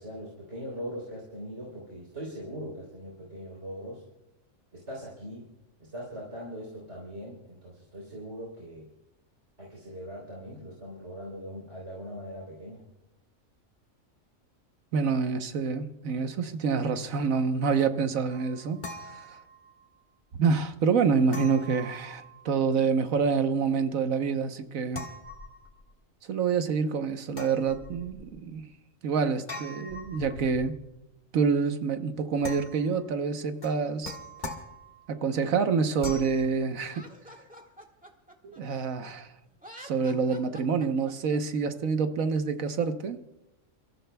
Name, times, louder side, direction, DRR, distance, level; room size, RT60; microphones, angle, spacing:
voice 1, 0.0-4.0 4.7-5.5 5.8-8.9 9.6-12.8, equal, 55° right, 3.9 m, -41 dB
voice 2, 14.9-19.3 20.4-25.0 26.3-28.7 29.0-30.8 31.3-34.2 35.1-37.0 38.4-39.3 39.8-43.2, right 5 dB, 90° right, 1.4 m, -27 dB
sound 1, 18.3-19.9 21.3-22.7 24.9-26.0 27.3-28.4 29.5-30.9 32.4-33.1 33.6-35.2 36.0-36.4, left 1 dB, 35° left, 1.7 m, -42 dB
Laughter, 36.8-39.1 39.5-41.4, equal, 5° right, 1.6 m, -48 dB
29.5 x 14.5 x 2.3 m
omnidirectional pair, 1.4 m